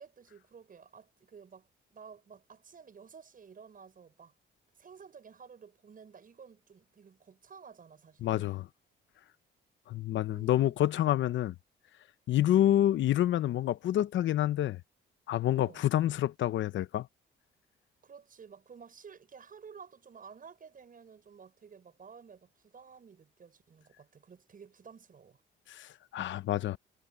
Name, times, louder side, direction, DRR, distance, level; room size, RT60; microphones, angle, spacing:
voice 1, 0.0-4.3 4.7-8.7 10.3-10.7 12.6-12.9 15.5-15.8 18.0-25.4, right 6 dB, 45° right, 6.5 m, -53 dB
voice 2, 8.2-8.7 9.9-11.5 12.3-14.8 15.3-17.1 25.7-26.8, left 12 dB, 70° left, 0.8 m, -28 dB
cardioid pair, 90°, 20 cm